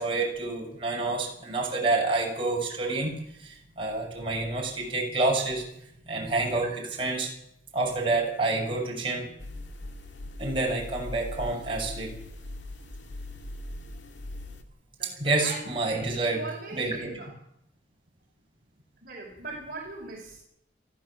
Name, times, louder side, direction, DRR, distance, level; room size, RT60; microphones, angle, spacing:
voice 1, 0.0-3.1 3.4-5.6 6.1-7.3 7.7-9.3 10.4-12.1 15.2-16.4 16.7-17.1, right 2 dB, 25° right, -1 dB, 7.7 m, -28 dB
sound 1, 9.4-14.6, left 1 dB, 70° left, 2.4 m, -40 dB
voice 2, 15.0-17.3 19.0-20.4, right 3 dB, 50° right, -2 dB, 5.6 m, -41 dB
23.5 x 15.0 x 7.6 m, 0.75 s
head